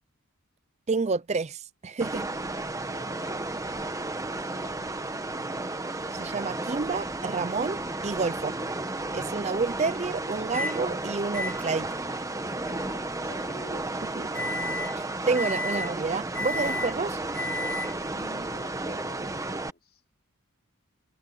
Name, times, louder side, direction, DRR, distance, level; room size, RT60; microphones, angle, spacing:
voice 1, 0.9-2.3 6.1-8.6 9.1-12.0 14.2-14.3 15.0-17.2, right 4 dB, 30° right, 0.4 m, -29 dB
sound 1, 2.0-19.7, right 2 dB, 15° right, 1.0 m, -33 dB
voice 2, 2.8-4.9 12.6-14.1 18.1-20.0, left 2 dB, 45° left, 3.2 m, -49 dB
Microwave oven, 10.5-10.8 11.3-18.2, left 2 dB, 10° left, 3.4 m, -35 dB
head